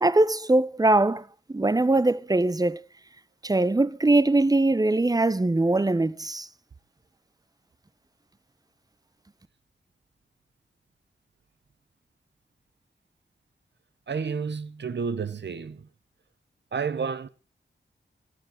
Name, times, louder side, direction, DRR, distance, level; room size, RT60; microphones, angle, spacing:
voice 1, 0.0-2.8 3.4-6.5, right 2 dB, 20° right, 0.8 m, -22 dB
voice 2, 14.1-15.9 16.7-17.3, right 5 dB, 65° right, 1.1 m, -30 dB
18.0 x 11.5 x 5.0 m
cardioid pair, 60°, 20 cm